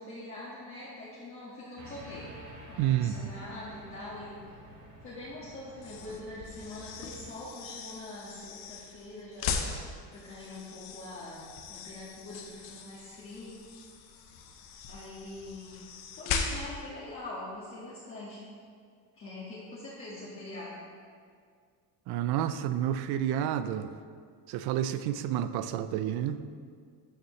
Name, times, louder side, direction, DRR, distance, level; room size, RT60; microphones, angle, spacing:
voice 1, 0.0-2.3 2.7-4.4 5.0-9.6 10.1-13.6 14.9-15.8 16.2-18.4 19.1-20.8, left 2 dB, 30° left, -8 dB, 1.7 m, -43 dB
sound 1, 1.8-7.3, right 1 dB, 45° right, 1.7 m, -50 dB
voice 2, 2.8-3.3 22.1-23.9 24.5-26.4, right 11 dB, 70° right, 12 dB, 0.6 m, -29 dB
sound 2, 5.7-16.9, left 5 dB, 70° left, 1.1 m, -39 dB
12.5 x 7.0 x 3.2 m, 2.1 s
cardioid pair, 150°, 40 cm